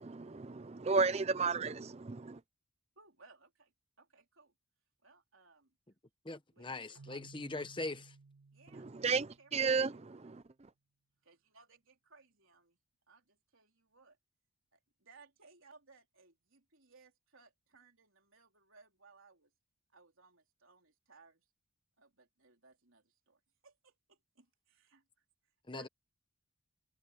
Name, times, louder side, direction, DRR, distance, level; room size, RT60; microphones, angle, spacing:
voice 1, 0.0-2.4 8.7-10.4, right 4 dB, 30° right, 0.5 m, -33 dB
voice 2, 3.0-4.5 5.0-5.8 6.5-7.2 8.5-10.4 11.2-12.8 13.1-14.2 14.7-19.5 19.9-21.5 22.0-25.2 25.7-25.9, right 4 dB, 60° right, 3.9 m, -63 dB
voice 3, 6.2-8.1 25.7-25.9, left 2 dB, 20° left, 1.0 m, -41 dB
Keyboard (musical), 7.0-9.9, right 3 dB, 90° right, 2.2 m, -58 dB
head